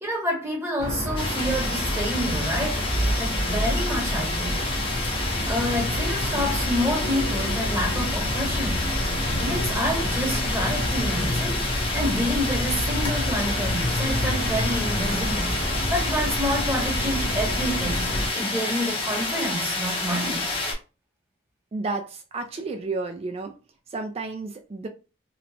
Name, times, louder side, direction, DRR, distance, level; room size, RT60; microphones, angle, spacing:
voice 1, 0.0-2.9 3.2-4.7 5.5-8.9 9.4-11.6 11.9-15.5 15.9-20.5, equal, 15° right, 0.9 m, -28 dB
sound 1, 0.8-18.3, equal, 75° left, 0.7 m, -28 dB
sound 2, 1.2-20.7, left 3 dB, 30° left, 0.7 m, -29 dB
voice 2, 21.7-23.6 23.9-24.9, right 3 dB, 35° right, 0.3 m, -31 dB
2.9 x 2.1 x 2.6 m
head